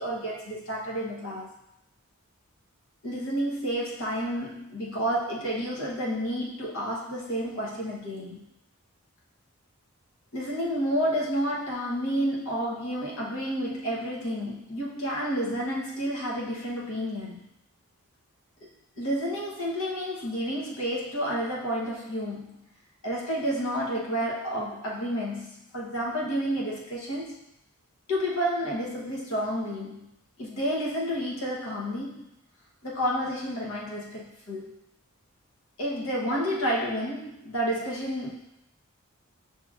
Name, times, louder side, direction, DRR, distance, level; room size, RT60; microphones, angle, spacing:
voice 1, 0.0-1.5 3.0-8.4 10.3-17.4 19.0-22.7 23.0-27.4 28.1-30.1 30.4-32.3 32.8-34.8 35.8-38.4, equal, 70° left, -4 dB, 1.0 m, -30 dB
5.9 x 2.9 x 2.4 m, 0.82 s
head